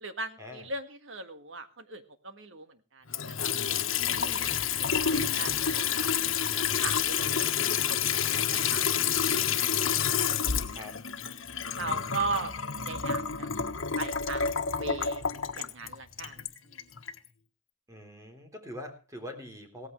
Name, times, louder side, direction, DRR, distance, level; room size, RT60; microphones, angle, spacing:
voice 1, 0.0-6.1 6.4-6.5 6.8-7.5 7.9-9.3 11.8-13.5 14.0-15.2 15.5-16.9, right 3 dB, 70° right, 8 dB, 1.8 m, -39 dB
Water tap faucet / Sink (filling or washing) / Trickle dribble, 3.1-17.2, left 7 dB, 85° left, 1.4 m, -29 dB
voice 2, 10.7-11.0 11.6-12.5 17.9-19.9, left 1 dB, 15° right, 4 dB, 3.7 m, -44 dB
17.0 x 15.0 x 3.3 m, 0.34 s
head